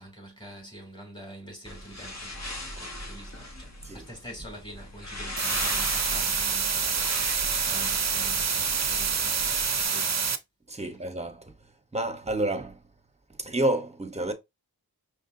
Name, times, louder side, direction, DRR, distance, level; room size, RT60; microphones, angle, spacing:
voice 1, 0.0-10.2, right 1 dB, 10° left, 2.7 m, -46 dB
sound 1, 1.6-9.8, left 1 dB, 45° left, 1.4 m, -39 dB
sound 2, 5.4-10.4, right 6 dB, 45° right, 0.5 m, -27 dB
voice 2, 10.7-11.5 11.9-12.8 13.4-14.3, right 1 dB, 15° right, 0.9 m, -29 dB
5.1 x 3.2 x 2.7 m
wide cardioid pair, 60°, 39 cm